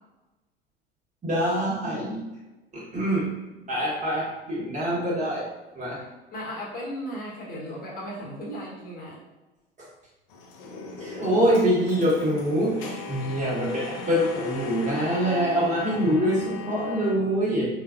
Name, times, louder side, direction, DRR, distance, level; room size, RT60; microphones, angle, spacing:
voice 1, 1.2-2.2 2.7-3.3 3.7-5.4 5.7-6.0 11.0-17.7, equal, 25° right, -5 dB, 1.3 m, -25 dB
voice 2, 6.0-9.2, equal, 30° left, -4 dB, 1.1 m, -36 dB
sound 1, 10.3-17.1, left 3 dB, 55° left, 0.6 m, -36 dB
3.7 x 2.3 x 2.4 m, 1.1 s
figure-of-eight pair, 70°, 29 cm